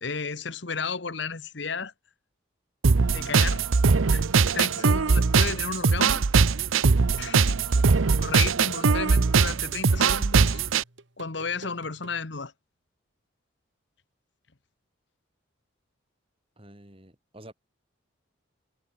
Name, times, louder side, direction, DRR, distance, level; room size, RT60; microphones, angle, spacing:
voice 1, 0.0-1.9 3.1-3.6 4.1-4.2 4.5-6.2 7.2-7.6 8.2-10.6 11.2-12.5, left 5 dB, 60° left, 1.2 m, -33 dB
sound 1, 2.8-10.8, right 5 dB, 85° right, 0.7 m, -21 dB
voice 2, 4.5-5.0 7.7-8.0 16.6-17.5, right 1 dB, 30° right, 5.5 m, -48 dB
sound 2, 8.2-12.2, right 2 dB, 65° right, 2.2 m, -50 dB
head